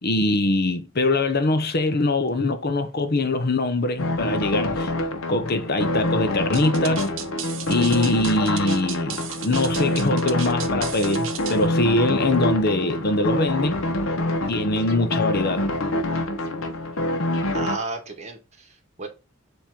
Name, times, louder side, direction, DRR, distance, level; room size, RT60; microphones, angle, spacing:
voice 1, 0.0-4.9 5.3-7.1 7.6-13.8 14.5-15.7, left 2 dB, 50° left, 0.9 m, -23 dB
sound 1, 4.0-17.8, left 1 dB, 75° left, 1.2 m, -26 dB
sound 2, 6.5-11.7, right 10 dB, 65° right, 0.9 m, -35 dB
voice 2, 17.5-19.1, right 3 dB, 35° right, 1.9 m, -33 dB
7.5 x 3.0 x 5.2 m
head